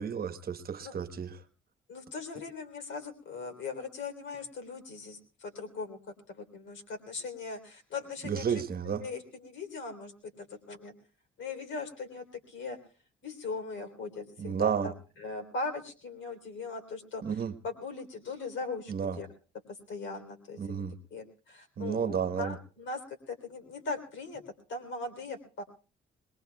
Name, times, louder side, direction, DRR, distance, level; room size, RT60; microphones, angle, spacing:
voice 1, 0.0-1.4 8.2-9.1 14.4-14.9 17.2-17.5 18.9-19.2 20.6-20.9 21.8-22.6, right 7 dB, 50° right, 10 dB, 1.2 m, -32 dB
voice 2, 1.9-6.0 6.3-8.6 9.0-10.9 11.4-12.8 13.2-19.3 19.7-20.8 21.1-24.4 24.7-25.6, left 3 dB, 70° left, 6 dB, 3.6 m, -40 dB
22.5 x 21.0 x 2.3 m, 0.37 s
cardioid pair, 90°, 20 cm